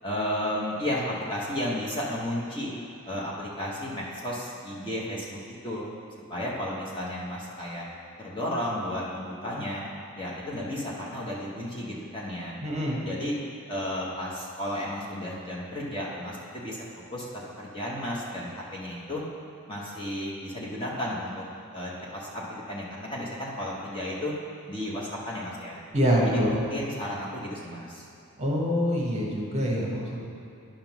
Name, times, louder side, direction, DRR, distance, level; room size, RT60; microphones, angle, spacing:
voice 1, 0.0-2.7 3.1-5.4 5.6-5.9 6.3-7.9 8.2-9.8 10.2-12.6 13.0-13.3 13.7-16.8 17.1-17.3 17.6-19.2 19.7-21.4 21.7-24.3 24.7-25.8 26.2-28.0, left 1 dB, 20° left, -5 dB, 1.1 m, -33 dB
voice 2, 12.6-13.0 25.9-26.6 28.4-30.2, equal, 30° right, -3 dB, 1.2 m, -25 dB
10.0 x 3.7 x 6.0 m, 2.6 s
head